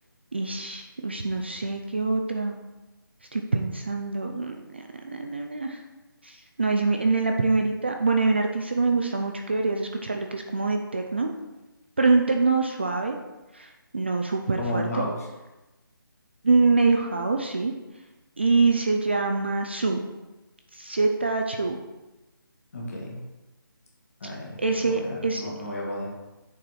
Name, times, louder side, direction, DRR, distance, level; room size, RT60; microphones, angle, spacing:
voice 1, 0.3-2.5 3.3-5.8 6.2-11.3 12.0-13.2 13.5-15.0 16.4-17.7 18.4-20.0 20.7-21.8 24.6-25.5, right 3 dB, 30° right, 3 dB, 0.4 m, -25 dB
voice 2, 14.6-15.2 22.7-23.2 24.2-26.1, left 1 dB, 40° left, -3 dB, 2.0 m, -33 dB
6.7 x 4.5 x 4.8 m, 1.1 s
hypercardioid pair, 175°, 12 cm